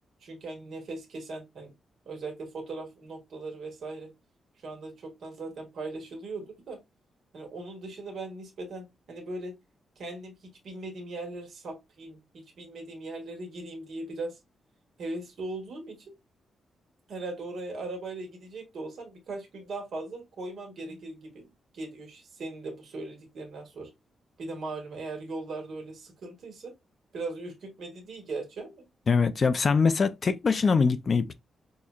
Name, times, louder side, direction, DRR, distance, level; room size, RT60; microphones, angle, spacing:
voice 1, 0.2-1.7 2.0-4.1 4.6-6.8 7.3-9.5 9.9-14.4 15.0-16.1 17.1-21.5 21.7-23.9 24.4-26.7 27.1-28.8, right 2 dB, 55° right, 1.8 m, -39 dB
voice 2, 29.1-31.3, left 5 dB, 30° left, 0.3 m, -23 dB
6.3 x 2.9 x 2.3 m
wide cardioid pair, 180°, 0 cm